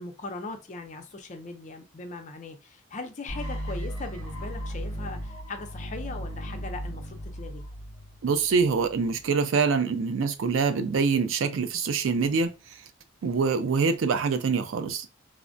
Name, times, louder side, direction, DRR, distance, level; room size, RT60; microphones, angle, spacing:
voice 1, 0.0-7.6, left 3 dB, 35° left, 0.5 m, -39 dB
sound 1, 3.3-9.2, equal, 5° left, 0.9 m, -36 dB
voice 2, 8.2-12.5 13.2-15.1, right 5 dB, 70° right, 0.4 m, -25 dB
3.4 x 2.1 x 2.5 m
head